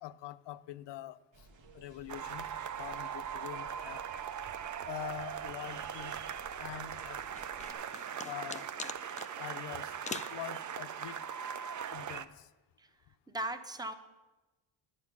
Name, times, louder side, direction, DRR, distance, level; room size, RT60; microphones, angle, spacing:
voice 1, 0.0-1.2 1.7-2.5 2.8-4.0 4.8-6.2 6.6-7.2 8.2-8.7 9.4-11.2 11.9-12.5, left 12 dB, 65° left, 15 dB, 0.6 m, -44 dB
sound 1, 1.3-7.7, right 2 dB, 75° right, 1.6 m, -57 dB
sound 2, 2.1-12.3, right 8 dB, 40° right, 0.6 m, -40 dB
sound 3, 7.4-9.3 10.0-10.4, left 5 dB, 20° left, 0.3 m, -42 dB
voice 2, 13.3-13.9, right 1 dB, 10° right, 9 dB, 0.8 m, -37 dB
11.0 x 7.9 x 5.9 m, 1.1 s
cardioid pair, 100°, 45 cm